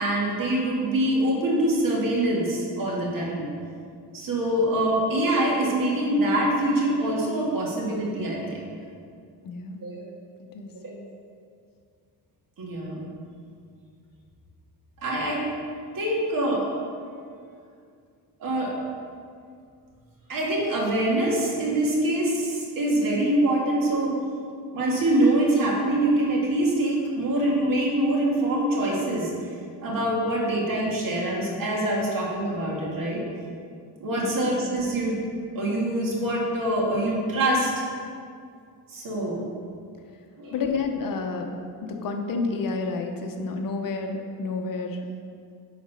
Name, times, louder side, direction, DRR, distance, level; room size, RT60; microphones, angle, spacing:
voice 1, 0.0-3.5 4.1-8.6 9.8-10.1 10.8-10.9 12.6-13.0 15.0-15.5 15.9-16.7 18.4-18.8 20.3-24.1 24.7-29.3 29.8-33.2 34.0-35.1 35.6-37.7 38.9-39.4 40.4-40.5, right 1 dB, 50° right, -3 dB, 2.1 m, -24 dB
voice 2, 9.4-9.8 10.5-10.7 34.2-34.4 40.5-41.5 41.8-45.0, left 4 dB, 55° left, 3 dB, 0.9 m, -29 dB
10.0 x 4.1 x 5.6 m, 2.3 s
cardioid pair, 120°, 41 cm